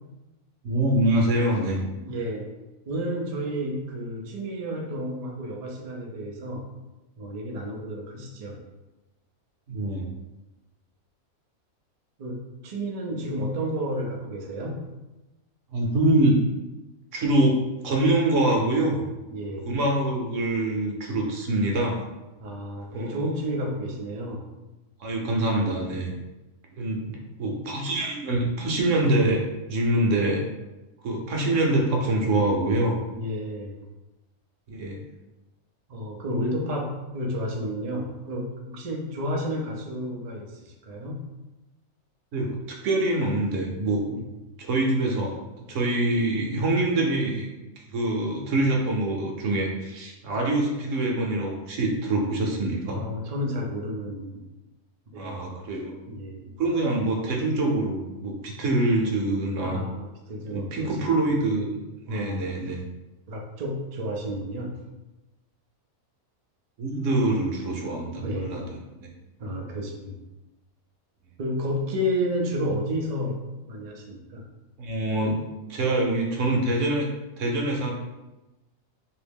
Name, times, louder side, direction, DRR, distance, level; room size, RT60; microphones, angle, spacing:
voice 1, 0.6-1.8 9.7-10.1 15.7-16.4 17.1-17.6 17.8-19.0 19.6-22.1 22.9-23.3 25.0-26.1 26.7-30.5 31.0-33.0 34.7-35.0 42.3-44.0 44.6-45.4 45.7-47.5 47.9-53.0 55.1-55.9 56.6-59.8 60.5-61.8 62.1-62.8 66.8-68.6 69.0-69.1 74.8-75.4 75.7-77.1 77.4-77.9, right 1 dB, 70° right, 0 dB, 1.0 m, -25 dB
voice 2, 1.8-2.5 2.9-6.7 7.2-8.6 12.2-14.8 19.3-19.7 22.4-24.5 33.1-33.8 35.9-41.2 44.1-44.3 52.9-54.5 55.1-55.4 56.1-56.6 59.6-61.1 62.1-62.6 63.3-64.8 68.2-68.7 69.4-70.2 71.4-73.4 73.7-74.5, equal, 85° right, 0 dB, 0.3 m, -31 dB
3.0 x 2.7 x 3.5 m, 1.0 s
omnidirectional pair, 1.4 m